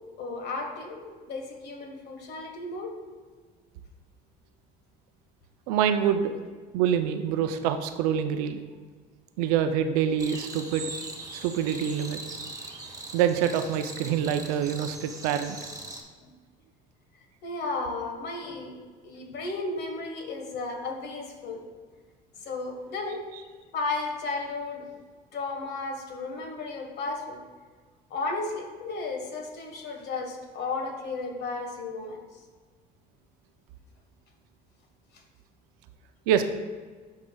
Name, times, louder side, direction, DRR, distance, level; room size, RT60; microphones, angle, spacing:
voice 1, 0.2-2.9 16.2-16.3 17.4-21.6 22.4-23.2 23.7-24.9 25.3-27.4 28.1-32.4 35.1-35.2, left 3 dB, 65° left, 3 dB, 1.4 m, -34 dB
voice 2, 5.7-6.3 6.7-8.6 9.4-10.9 11.3-12.2 13.1-15.6 36.3-36.4, right 9 dB, 90° right, 8 dB, 0.5 m, -26 dB
sound 1, 10.2-16.0, right 2 dB, 20° right, 1.3 m, -40 dB
12.0 x 4.8 x 2.3 m, 1.5 s
supercardioid pair, 80°, 19 cm